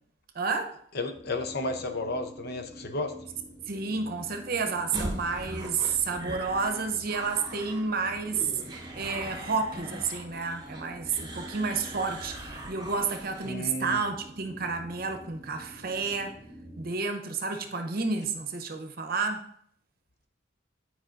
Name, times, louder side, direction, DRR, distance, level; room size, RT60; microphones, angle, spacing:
voice 1, 0.3-0.8 3.7-8.5 9.0-16.4 16.8-19.5, right 4 dB, 50° right, 0.7 m, -30 dB
voice 2, 0.9-3.1 13.4-14.0, left 2 dB, 50° left, 0.6 m, -32 dB
sound 1, 1.1-17.0, equal, 15° left, 0.7 m, -48 dB
sound 2, 4.9-13.6, right 1 dB, 20° right, 0.9 m, -40 dB
9.2 x 4.8 x 2.5 m
head